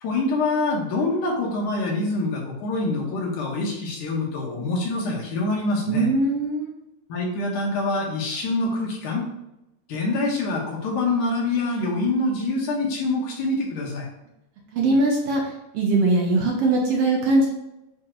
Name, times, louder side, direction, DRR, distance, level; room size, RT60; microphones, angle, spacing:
voice 1, 0.0-6.1 7.1-9.2 9.9-14.1, left 2 dB, 90° left, -1 dB, 2.8 m, -25 dB
voice 2, 5.9-6.7 14.7-15.4 15.7-17.5, right 2 dB, 65° right, -1 dB, 1.7 m, -21 dB
8.4 x 4.5 x 2.5 m, 0.91 s
omnidirectional pair, 3.4 m